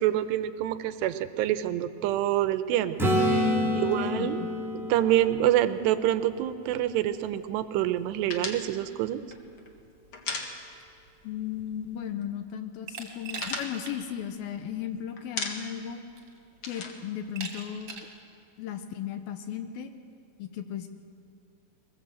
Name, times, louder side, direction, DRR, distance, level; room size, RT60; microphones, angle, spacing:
voice 1, 0.0-4.4 4.9-9.2, right 12 dB, 85° right, 11 dB, 2.9 m, -27 dB
Acoustic guitar / Strum, 3.0-6.8 11.6-11.7, equal, ahead, 2.0 m, -28 dB
voice 2, 3.4-4.5 11.2-16.0 16.7-18.1 18.6-19.9 20.4-20.9, left 9 dB, 75° left, 8 dB, 2.4 m, -36 dB
sound 1, 8.3-11.1 11.3-11.5 11.8-12.5 12.8-14.8 15.2-15.9 16.2-18.0, left 4 dB, 50° left, 1.6 m, -37 dB
Glass, 12.9-14.0 14.4-14.5 15.6-15.7 16.2-16.6 17.4-18.2, right 5 dB, 40° right, 2.8 m, -40 dB
21.5 x 20.5 x 7.8 m, 2.5 s
omnidirectional pair, 4.8 m